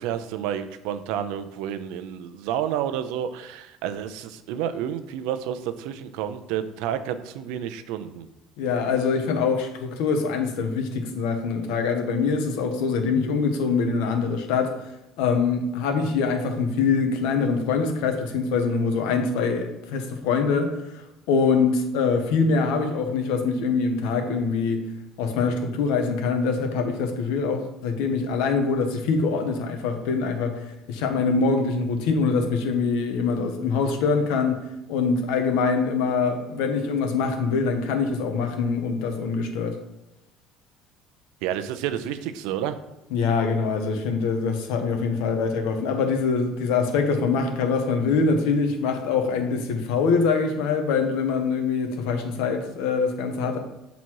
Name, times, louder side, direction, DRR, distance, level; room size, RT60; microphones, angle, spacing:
voice 1, 0.0-8.3 41.4-42.8, right 10 dB, 80° right, 10 dB, 0.5 m, -30 dB
voice 2, 8.6-14.8 15.2-24.8 25.2-34.6 34.9-39.8 43.1-53.6, left 5 dB, 85° left, 5 dB, 1.1 m, -24 dB
7.4 x 4.0 x 4.7 m, 0.93 s
cardioid pair, 175°, 0 cm